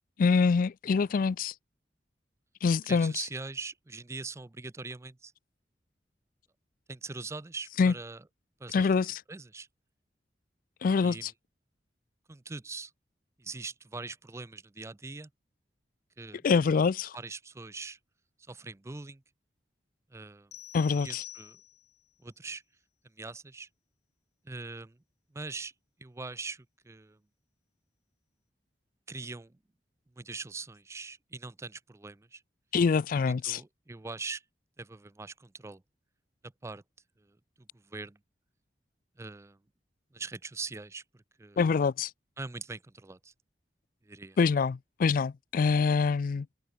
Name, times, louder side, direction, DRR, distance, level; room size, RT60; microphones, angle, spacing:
voice 1, 0.2-1.5 2.6-3.1 7.8-7.9 8.7-9.2 10.8-11.3 16.4-17.2 20.7-21.2 32.7-33.6 41.6-42.1 44.4-46.5, left 5 dB, 50° left, 0.4 m, -25 dB
voice 2, 2.9-5.3 6.9-8.2 8.6-8.9 9.3-9.7 11.0-11.3 12.3-12.9 13.4-15.3 16.2-16.4 17.1-18.0 18.5-19.2 20.1-20.5 21.0-21.6 22.2-22.6 23.2-23.7 24.4-25.0 25.3-25.7 26.0-27.2 29.1-29.6 30.2-32.4 33.3-34.4 34.8-35.8 36.6-36.8 37.2-38.2 39.2-39.6 40.1-41.6 42.4-43.3 44.0-44.4, right 3 dB, 15° right, 0.4 m, -42 dB
sound 1, 20.5-22.0, left 12 dB, 65° left, 1.7 m, -47 dB
head